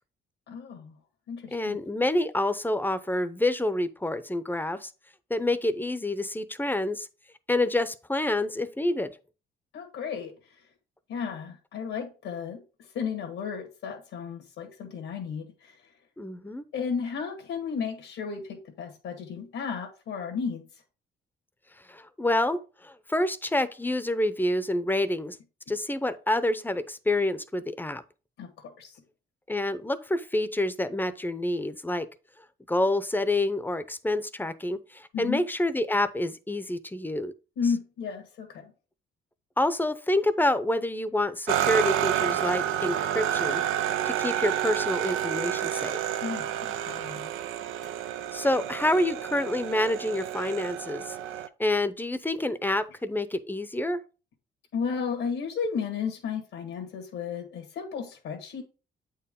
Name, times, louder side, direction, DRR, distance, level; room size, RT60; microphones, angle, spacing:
voice 1, 0.5-0.9 1.3-1.8 9.7-10.3 11.1-12.6 12.9-15.7 16.7-20.6 28.4-28.9 35.1-35.4 37.6-38.7 46.2-47.3 47.8-47.9 54.7-58.6, left 6 dB, 85° left, 1.6 m, -33 dB
voice 2, 1.5-4.9 5.3-7.1 7.5-9.1 16.2-16.6 21.9-25.4 25.7-28.0 29.5-32.1 32.7-37.3 39.6-43.6 44.0-46.0 48.3-51.2 51.6-54.0, left 1 dB, 10° left, 0.7 m, -27 dB
sound 1, 41.5-51.5, right 11 dB, 90° right, 0.5 m, -29 dB
8.1 x 4.7 x 3.6 m
cardioid pair, 90°, 20 cm